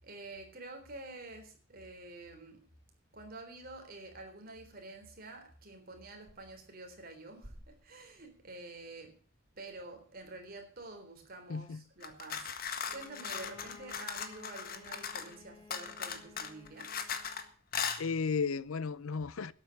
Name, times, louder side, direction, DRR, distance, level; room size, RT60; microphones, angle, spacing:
voice 1, 0.0-2.6 3.1-9.2 9.5-16.9, right 2 dB, 45° right, 3.7 m, -48 dB
voice 2, 11.5-11.8 17.9-19.5, left 5 dB, 85° left, 0.6 m, -34 dB
sound 1, 12.0-15.3 15.7-17.4 17.7-18.0, left 7 dB, 45° left, 1.6 m, -38 dB
Bowed string instrument, 12.8-17.5, left 3 dB, 20° left, 2.6 m, -56 dB
12.5 x 8.7 x 8.4 m
head